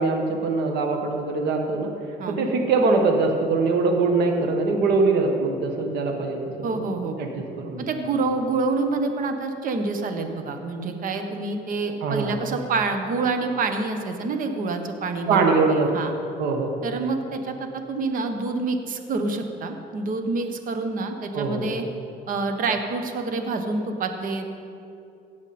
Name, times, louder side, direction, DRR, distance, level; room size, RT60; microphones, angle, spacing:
voice 1, 0.0-1.9 2.3-6.4 6.7-6.8 7.2-7.3 7.6-7.8 12.0-12.4 15.3-15.9 16.4-16.8 21.3-21.7, right 3 dB, 80° right, 3 dB, 1.4 m, -22 dB
voice 2, 6.6-7.2 7.8-16.1 16.8-21.8 22.3-24.5, right 3 dB, 55° right, 6 dB, 1.2 m, -27 dB
16.5 x 7.1 x 4.3 m, 2.6 s
cardioid pair, 110°, 17 cm